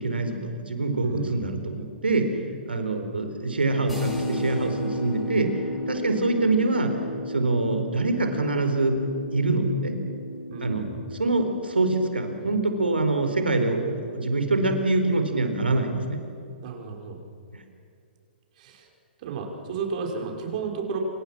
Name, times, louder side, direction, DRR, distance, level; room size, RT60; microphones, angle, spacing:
voice 1, 0.0-2.3 2.7-5.6 5.9-6.9 7.3-9.0 9.3-10.0 10.6-10.9 11.2-16.2, right 2 dB, 85° right, 6 dB, 4.3 m, -25 dB
voice 2, 1.0-1.7 10.5-11.1 16.6-17.2 18.6-18.9 19.2-21.0, right 5 dB, 45° right, 2 dB, 5.6 m, -33 dB
sound 1, 3.9-13.5, equal, ahead, 7.3 m, -34 dB
28.0 x 26.5 x 6.2 m, 2.6 s
figure-of-eight pair, 120°, 5 cm